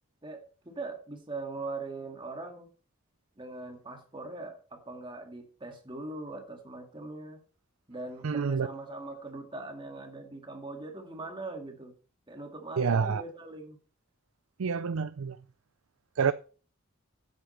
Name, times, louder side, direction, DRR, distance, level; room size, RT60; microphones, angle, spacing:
voice 1, 0.2-2.7 3.4-7.4 7.9-11.9 12.3-13.8, right 2 dB, 25° right, 2.0 m, -41 dB
voice 2, 8.2-8.7 12.8-13.2 14.6-15.4 16.2-16.3, right 6 dB, 90° right, 0.5 m, -27 dB
10.5 x 8.2 x 4.4 m
head